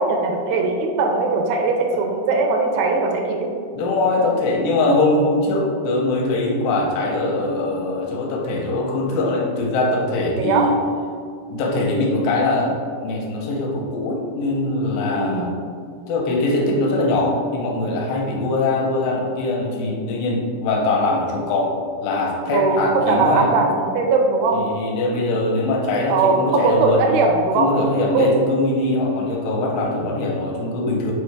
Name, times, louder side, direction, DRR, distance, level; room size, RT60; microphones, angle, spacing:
voice 1, 0.0-3.5 10.4-10.7 15.1-15.5 22.5-24.6 26.1-27.7 28.1-28.3, right 3 dB, 80° right, 2 dB, 2.7 m, -20 dB
voice 2, 3.8-10.7 11.5-12.7 13.0-15.5 16.1-21.7 22.0-23.5 24.5-27.0 27.6-31.1, left 2 dB, 85° left, -1 dB, 2.8 m, -22 dB
6.9 x 4.6 x 3.4 m, 2.2 s
omnidirectional pair, 5.0 m